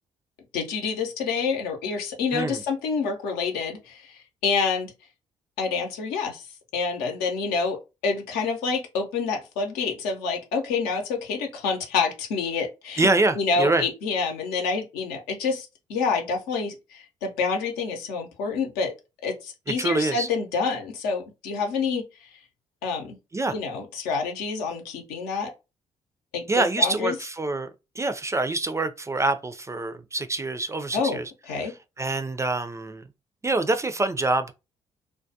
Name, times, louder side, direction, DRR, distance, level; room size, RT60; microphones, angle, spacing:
voice 1, 0.5-4.1 4.4-4.9 5.6-6.4 6.7-7.8 8.0-13.1 13.4-18.9 19.2-22.0 22.8-23.2 23.5-25.5 26.3-27.1 30.9-31.7, left 5 dB, 80° left, 0.7 m, -27 dB
voice 2, 13.0-13.9 19.7-20.3 23.3-23.6 26.5-31.3 31.6-33.0 33.4-34.5, right 2 dB, 20° right, 0.4 m, -25 dB
2.2 x 2.2 x 2.6 m
hypercardioid pair, 45°, 15 cm